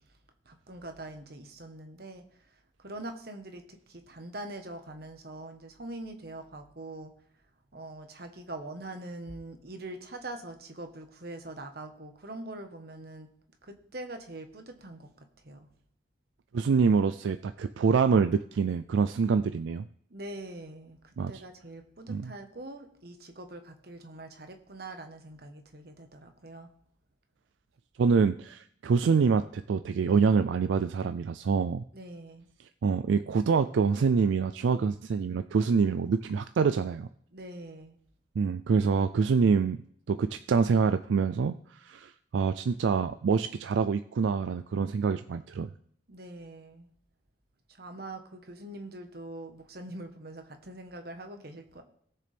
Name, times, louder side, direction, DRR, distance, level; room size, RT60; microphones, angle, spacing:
voice 1, 0.5-2.5 2.8-7.1 7.7-13.3 13.6-15.7 20.1-26.7 31.9-32.5 37.3-38.0 46.1-46.9 47.8-51.8, right 1 dB, 55° right, 6 dB, 1.2 m, -43 dB
voice 2, 16.5-19.8 21.2-21.3 22.1-22.3 28.0-31.8 32.8-37.1 38.4-39.8 40.1-45.7, right 5 dB, 75° right, 11 dB, 0.3 m, -26 dB
18.5 x 6.8 x 3.4 m, 0.65 s
head